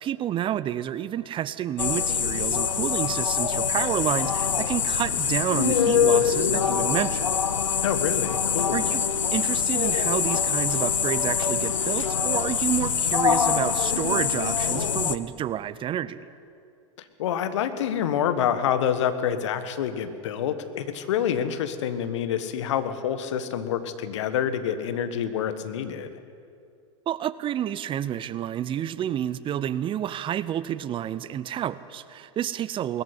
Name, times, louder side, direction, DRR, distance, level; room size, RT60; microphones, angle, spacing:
voice 1, 0.0-7.3 7.8-7.9 8.7-9.0 9.3-16.3 27.1-33.0, right 11 dB, 30° right, 16 dB, 0.7 m, -29 dB
sound 1, 1.8-15.2, left 7 dB, 85° left, 0.8 m, -24 dB
voice 2, 7.8-8.9 17.2-26.1, left 9 dB, 65° left, 11 dB, 1.5 m, -27 dB
20.0 x 14.5 x 9.7 m, 2.5 s
figure-of-eight pair, 85°, 16 cm